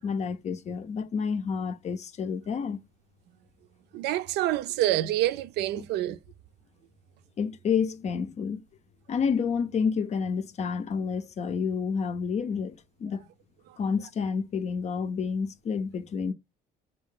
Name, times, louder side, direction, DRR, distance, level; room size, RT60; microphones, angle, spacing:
voice 1, 0.0-2.8 7.4-8.6 9.1-13.3 13.8-16.3, left 6 dB, 40° left, 0.5 m, -29 dB
voice 2, 3.9-6.2, right 14 dB, 85° right, 0.5 m, -27 dB
4.1 x 2.8 x 3.6 m
cardioid pair, 110°, 17 cm